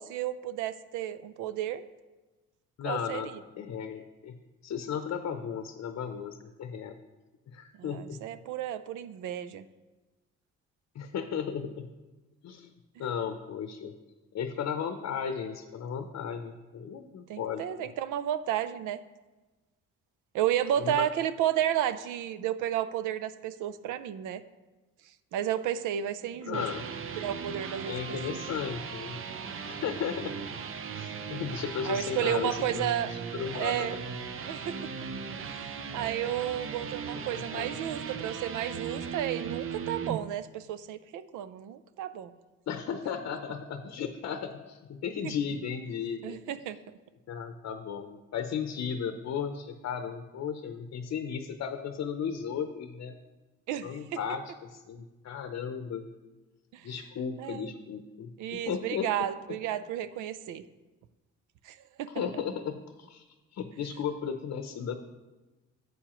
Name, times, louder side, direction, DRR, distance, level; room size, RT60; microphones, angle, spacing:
voice 1, 0.0-1.8 2.9-3.2 7.7-9.6 13.0-13.1 17.3-19.0 20.3-24.4 25.3-26.7 27.2-28.5 31.8-33.1 33.5-34.0 34.4-34.8 35.5-42.3 45.2-45.3 46.2-46.8 53.7-54.2 56.7-56.9 57.4-57.7 58.4-60.6 61.6-62.4, right 11 dB, 85° right, 14 dB, 0.5 m, -32 dB
voice 2, 2.8-3.3 3.6-6.9 7.5-8.2 10.9-11.9 12.4-12.7 13.0-13.9 14.3-17.9 20.8-21.0 26.4-26.8 27.9-29.2 29.6-30.4 30.9-33.9 37.1-37.7 42.7-46.4 47.3-53.1 53.8-56.1 56.8-59.1 62.1-63.2 63.5-65.0, left 7 dB, 55° left, 7 dB, 0.7 m, -35 dB
sound 1, 26.3-40.2, right 6 dB, 45° right, 0.7 m, -38 dB
11.5 x 7.9 x 3.0 m, 1.2 s
cardioid pair, 90°, 30 cm